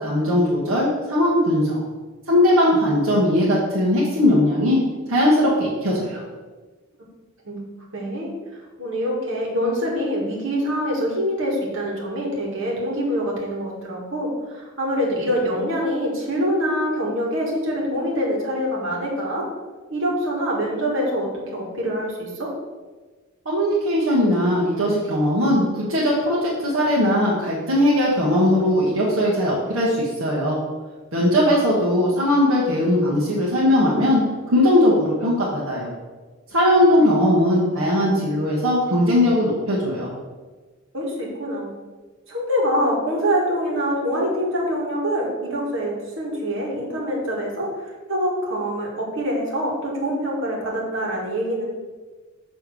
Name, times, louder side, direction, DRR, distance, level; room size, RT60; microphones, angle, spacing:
voice 1, 0.0-1.8 2.3-4.8 5.1-6.2 23.4-30.6 31.1-34.2 34.5-35.9 36.5-40.1, left 1 dB, 85° right, -6 dB, 1.4 m, -19 dB
voice 2, 7.9-8.3 8.8-19.5 19.9-22.5 31.5-31.6 37.0-37.1 40.9-41.7 42.3-51.6, equal, 65° right, -3 dB, 1.9 m, -25 dB
6.8 x 3.4 x 6.1 m, 1.3 s
head